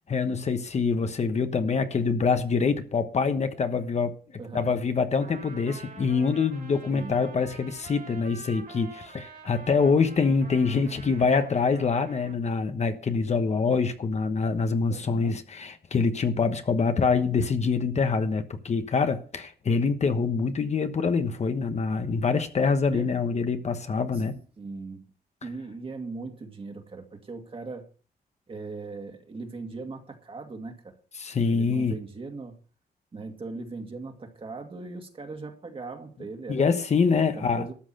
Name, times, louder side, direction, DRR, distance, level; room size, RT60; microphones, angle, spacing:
voice 1, 0.1-4.2 4.5-24.4 31.2-31.9 36.5-37.7, left 5 dB, 45° left, 1.2 m, -25 dB
voice 2, 4.4-4.7 6.9-7.2 14.9-15.4 22.9-23.1 24.6-25.0 25.4-27.9 28.5-30.9 31.5-32.6 33.1-36.7 37.4-37.7, right 3 dB, 35° right, 2.2 m, -39 dB
Trumpet, 5.2-12.4, right 4 dB, 60° right, 3.0 m, -47 dB
13.0 x 6.3 x 7.8 m
wide cardioid pair, 140°, 16 cm